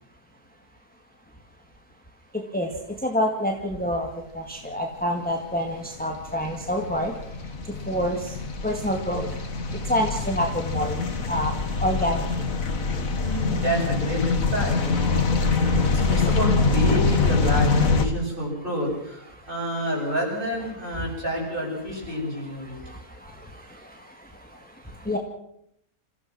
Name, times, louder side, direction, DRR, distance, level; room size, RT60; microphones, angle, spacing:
voice 1, 2.3-12.5 16.2-16.3 19.3-19.5 21.0-21.1 22.6-25.2, equal, 5° left, 2 dB, 2.1 m, -29 dB
sound 1, 5.2-18.1, left 4 dB, 60° left, 2.2 m, -24 dB
voice 2, 13.2-22.8, equal, 35° right, -1 dB, 7.9 m, -29 dB
28.0 x 15.5 x 6.2 m, 0.74 s
omnidirectional pair, 1.6 m